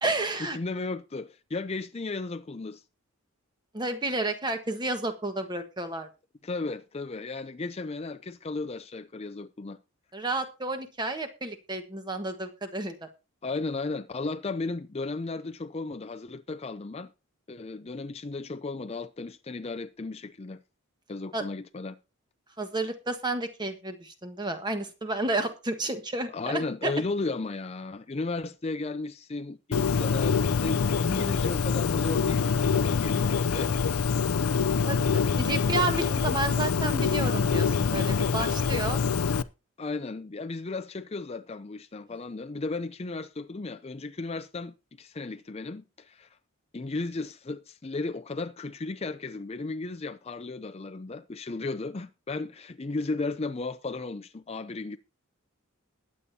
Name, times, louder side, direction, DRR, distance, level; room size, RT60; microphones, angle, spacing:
voice 1, 0.0-0.6 3.7-6.1 10.1-13.1 21.3-21.4 22.6-26.9 34.8-39.0, right 2 dB, 20° right, 1.4 m, -31 dB
voice 2, 0.5-2.8 6.4-9.8 13.4-17.1 17.5-20.6 21.1-22.0 26.3-33.7 39.8-46.3 46.7-55.0, left 3 dB, 30° left, 0.5 m, -35 dB
Bird, 29.7-39.4, left 5 dB, 90° left, 0.5 m, -25 dB
20.5 x 8.5 x 2.8 m
head